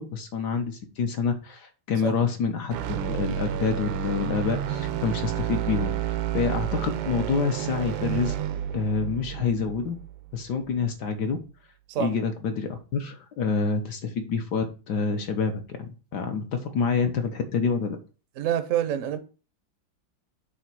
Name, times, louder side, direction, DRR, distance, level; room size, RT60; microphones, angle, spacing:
voice 1, 0.0-8.3 8.7-10.0 10.3-11.4 12.0-18.0, left 5 dB, 60° left, 1.4 m, -27 dB
sound 1, 2.7-10.9, right 12 dB, 80° right, 1.3 m, -31 dB
voice 2, 18.4-19.2, right 10 dB, 60° right, 0.9 m, -26 dB
8.1 x 3.1 x 6.0 m
omnidirectional pair, 2.2 m